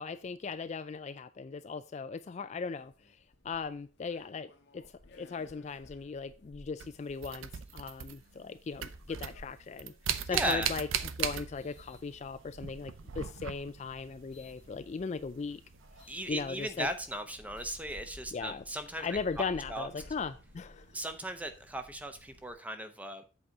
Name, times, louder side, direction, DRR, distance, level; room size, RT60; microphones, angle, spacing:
voice 1, 0.0-3.2 3.4-4.8 5.1-9.9 10.3-10.9 11.2-15.6 16.3-16.9 18.3-18.6 19.0-20.9, left 5 dB, 35° left, 0.3 m, -38 dB
sound 1, 2.7-12.7 13.4-14.6 16.0-16.3 16.8-16.9 17.2-21.3, left 2 dB, 55° left, 0.9 m, -57 dB
sound 2, 6.8-8.5 8.7-11.9 12.2-14.0 15.9-16.0 16.8-16.9, right 8 dB, 90° right, 0.6 m, -37 dB
voice 2, 10.1-10.7 16.1-19.4 19.7-19.9 20.9-23.2, right 1 dB, 5° right, 0.7 m, -37 dB
sound 3, 10.6-22.5, right 1 dB, 65° right, 1.4 m, -58 dB
7.8 x 4.1 x 5.8 m
head